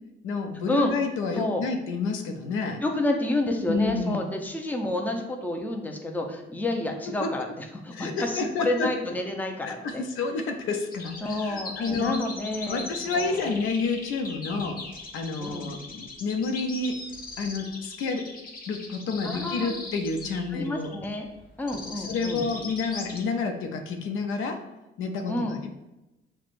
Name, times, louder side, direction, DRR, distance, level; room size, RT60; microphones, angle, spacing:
voice 1, 0.2-2.8 3.7-4.2 7.2-7.3 7.9-8.9 9.6-12.2 12.7-14.8 15.1-17.0 17.4-18.3 18.7-20.9 22.0-24.6 25.0-25.7, left 4 dB, 85° left, 4 dB, 0.5 m, -29 dB
voice 2, 2.8-10.0 11.2-13.5 14.5-14.7 15.4-15.7 19.2-19.8 20.5-21.3 21.6-22.5 25.3-25.6, left 1 dB, 10° left, 3 dB, 0.5 m, -29 dB
sound 1, 10.9-23.2, left 3 dB, 45° left, 0.7 m, -40 dB
5.8 x 2.2 x 2.5 m, 0.96 s
cardioid pair, 90°, 20 cm